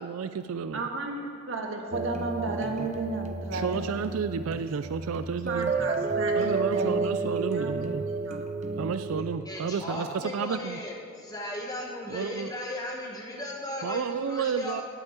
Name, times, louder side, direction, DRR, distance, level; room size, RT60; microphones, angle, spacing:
voice 1, 0.0-0.8 3.5-5.7 6.4-8.0 8.8-10.8 12.1-12.5 13.8-14.8, right 6 dB, 80° right, 12 dB, 0.4 m, -31 dB
voice 2, 0.7-4.0 4.5-4.6 5.4-7.7 8.1-8.4, right 3 dB, 65° right, 1 dB, 1.6 m, -34 dB
sound 1, 1.9-9.2, right 3 dB, 35° right, 0.5 m, -31 dB
voice 3, 9.4-14.8, left 1 dB, 15° left, -1 dB, 1.5 m, -36 dB
8.9 x 8.0 x 9.1 m, 2.2 s
head